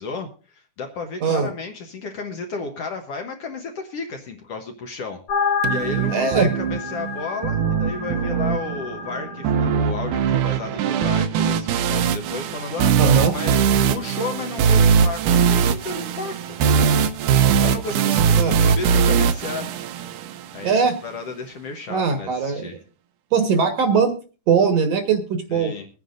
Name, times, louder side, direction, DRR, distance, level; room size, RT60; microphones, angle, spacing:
voice 1, 0.0-16.6 17.6-19.7 20.5-22.8 25.5-25.9, left 4 dB, 65° left, 4 dB, 1.7 m, -33 dB
sound 1, 5.3-9.8, left 5 dB, 80° left, 3.6 m, -29 dB
sound 2, 5.6-20.6, right 7 dB, 80° right, 2.2 m, -21 dB
voice 2, 6.1-6.5 13.0-13.3 18.4-18.6 20.6-21.0 21.9-22.7 23.3-24.2 24.5-25.7, right 5 dB, 60° right, 6 dB, 2.1 m, -20 dB
22.5 x 9.5 x 2.5 m, 0.35 s
omnidirectional pair, 3.6 m